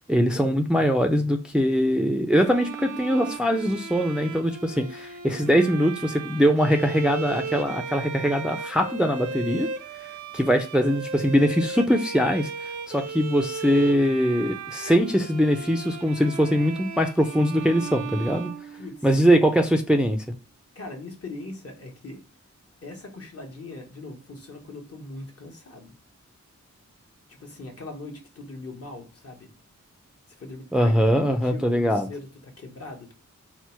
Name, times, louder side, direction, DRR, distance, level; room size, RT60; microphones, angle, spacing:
voice 1, 0.1-9.7 10.3-18.5 19.0-20.2 30.7-32.1, equal, 5° right, 0.4 m, -22 dB
Bowed string instrument, 2.3-19.3, right 5 dB, 85° right, 0.5 m, -36 dB
voice 2, 20.7-22.2 22.8-25.9 27.3-29.5 30.4-33.1, left 2 dB, 55° left, 1.1 m, -40 dB
4.4 x 2.0 x 4.4 m
wide cardioid pair, 95°, 29 cm